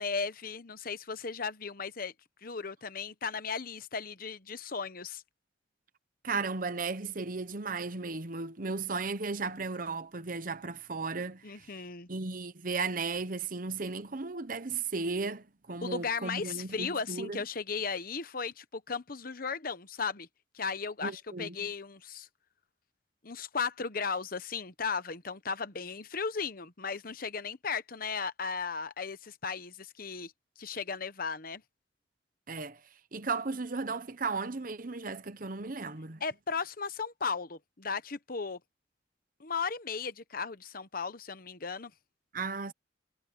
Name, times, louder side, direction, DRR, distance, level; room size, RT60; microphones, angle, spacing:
voice 1, 0.0-2.1 2.4-5.2 11.4-12.1 15.8-20.3 20.5-22.3 23.2-30.3 30.6-31.6 36.2-38.6 39.4-41.9, left 5 dB, 50° left, 1.0 m, -36 dB
voice 2, 6.2-11.8 12.1-17.4 21.0-21.7 32.5-32.8 33.1-36.2 42.3-42.7, right 4 dB, 45° right, 1.0 m, -35 dB
head